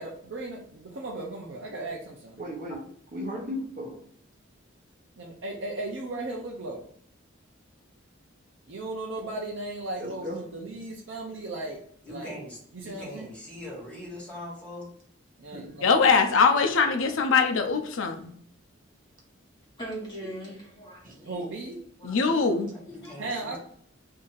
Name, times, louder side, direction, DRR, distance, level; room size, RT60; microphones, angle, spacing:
voice 1, 0.0-2.4 5.1-6.8 8.7-11.8 12.1-12.4 12.7-13.3 15.4-16.0 21.2-21.8 23.2-23.6, right 2 dB, 65° right, -2 dB, 0.5 m, -36 dB
voice 2, 2.4-2.8 3.1-4.0 10.0-10.4 15.5-15.8 21.0-21.2, equal, 40° right, 0 dB, 0.9 m, -36 dB
voice 3, 12.0-14.9 22.7-23.6, left 1 dB, 5° left, -7 dB, 1.4 m, -41 dB
voice 4, 15.8-18.3 22.0-22.7, left 5 dB, 75° left, 5 dB, 0.5 m, -22 dB
voice 5, 19.8-21.5 22.0-22.4 22.9-23.2, right 1 dB, 20° left, -5 dB, 1.3 m, -40 dB
2.7 x 2.6 x 3.8 m, 0.62 s
head